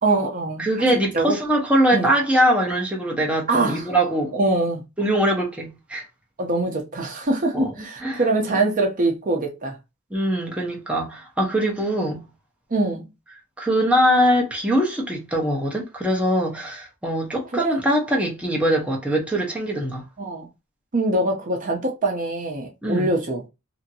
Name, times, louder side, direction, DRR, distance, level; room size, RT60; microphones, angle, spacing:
voice 1, 0.0-0.7 1.1-1.4 1.9-2.1 3.5-3.9 4.3-4.8 6.4-9.8 12.7-13.1 17.5-17.8 20.2-20.5 20.9-23.4, right 2 dB, 40° right, 0.6 m, -23 dB
voice 2, 0.6-4.4 5.0-6.0 7.5-7.7 8.0-8.6 10.1-12.2 13.6-20.0 22.8-23.1, equal, 5° right, 0.7 m, -22 dB
2.8 x 2.5 x 2.7 m
head